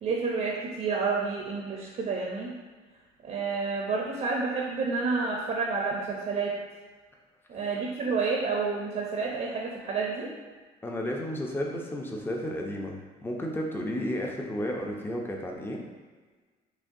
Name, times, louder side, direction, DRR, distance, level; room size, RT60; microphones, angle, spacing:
voice 1, 0.0-2.5 3.2-6.6 7.5-10.3, right 4 dB, 50° right, -2 dB, 0.7 m, -29 dB
voice 2, 10.8-15.8, equal, 15° left, 0 dB, 0.6 m, -32 dB
6.1 x 2.2 x 2.6 m, 1.4 s
cardioid pair, 110°, 17 cm